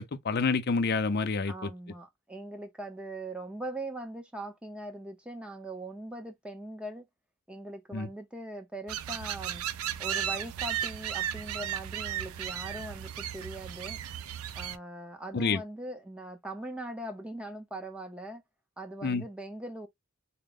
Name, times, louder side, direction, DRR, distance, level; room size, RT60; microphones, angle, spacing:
voice 1, 0.0-1.7 7.9-8.1 15.3-15.6 19.0-19.2, left 4 dB, 50° left, 0.5 m, -28 dB
voice 2, 1.5-7.1 7.5-9.7 10.0-14.0 14.6-18.4 18.8-19.9, right 1 dB, 5° right, 0.7 m, -41 dB
sound 1, 8.9-14.8, right 10 dB, 80° right, 0.4 m, -35 dB
3.7 x 2.1 x 3.6 m
head